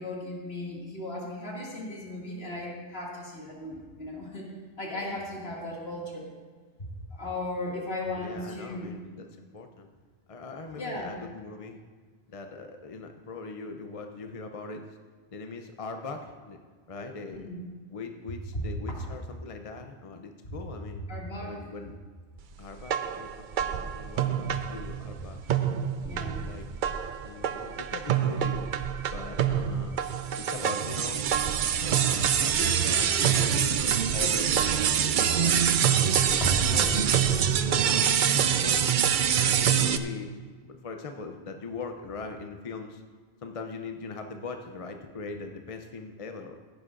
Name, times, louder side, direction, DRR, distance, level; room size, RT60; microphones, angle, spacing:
voice 1, 0.0-4.5 4.8-6.3 7.1-8.9 10.8-11.1 17.3-17.6 20.4-20.5 21.1-21.6 26.0-26.5 36.4-37.3, left 1 dB, 60° left, -3 dB, 2.6 m, -36 dB
voice 2, 8.2-9.3 9.5-9.9 10.3-11.8 12.3-15.0 15.3-16.6 16.9-17.5 17.9-21.0 21.4-22.0 22.6-25.4 26.2-26.7 27.2-28.6 29.1-30.0 30.4-31.3 31.8-36.1 36.6-37.2 37.6-39.0 39.3-43.0 43.4-46.6, left 4 dB, 35° left, 5 dB, 0.6 m, -41 dB
sound 1, 22.8-25.2 25.5-40.0, right 8 dB, 60° right, 0.6 m, -25 dB
15.5 x 11.0 x 2.6 m, 1.5 s
omnidirectional pair, 1.2 m